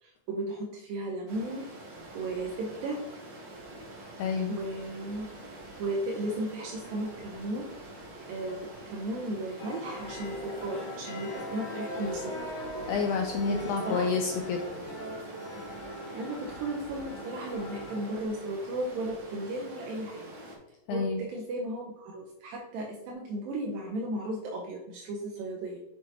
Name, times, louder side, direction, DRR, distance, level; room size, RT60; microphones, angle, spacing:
voice 1, 0.0-1.7 2.1-3.1 4.5-5.3 5.8-7.7 8.3-12.4 13.5-14.1 16.1-20.3 20.9-25.8, right 1 dB, 80° right, -1 dB, 2.5 m, -35 dB
Stream, 1.3-20.6, right 1 dB, 45° right, 1.7 m, -46 dB
voice 2, 4.2-4.6 12.9-14.8 20.9-21.3, left 5 dB, 85° left, 3 dB, 1.8 m, -29 dB
sound 1, 9.6-18.3, equal, 55° left, 2.9 m, -40 dB
6.7 x 6.3 x 2.8 m, 0.90 s
omnidirectional pair, 4.1 m